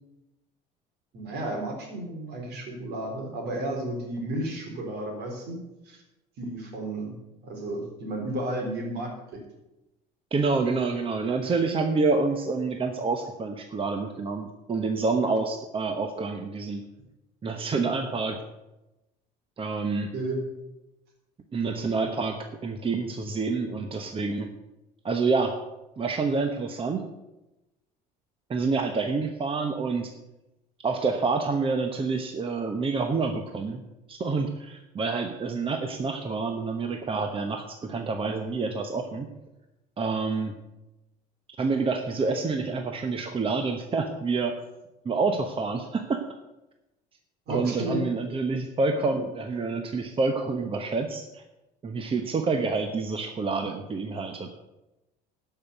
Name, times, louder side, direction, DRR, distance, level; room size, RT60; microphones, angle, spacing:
voice 1, 1.1-5.6 5.9-6.0 6.4-7.2 7.4-9.4 20.1-20.4 47.5-48.0, right 1 dB, 65° right, 2 dB, 3.8 m, -32 dB
voice 2, 10.3-16.8 17.4-18.4 19.6-20.1 21.5-24.5 25.0-25.6 26.0-27.0 28.5-30.1 30.8-33.8 34.1-39.3 40.0-40.5 41.6-44.5 45.0-46.2 47.5-51.4 51.8-54.5, right 4 dB, 30° right, 5 dB, 1.0 m, -28 dB
12.0 x 5.8 x 8.0 m, 0.98 s
supercardioid pair, 95°, 18 cm